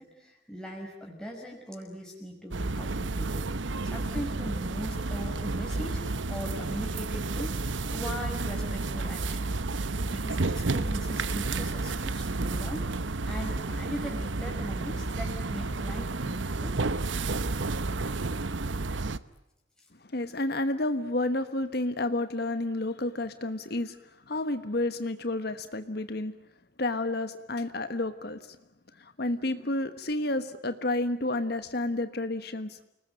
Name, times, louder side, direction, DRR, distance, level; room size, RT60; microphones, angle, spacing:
voice 1, 0.0-3.5 3.8-6.0 6.3-9.5 10.0-12.9 13.3-16.8, equal, 5° left, -2 dB, 5.5 m, -39 dB
sound 1, 2.5-19.2, right 3 dB, 85° right, 1.0 m, -31 dB
voice 2, 20.0-24.0 24.3-26.3 26.8-28.6 29.0-32.8, left 2 dB, 55° left, 10 dB, 1.3 m, -30 dB
29.5 x 20.0 x 9.2 m, 0.87 s
head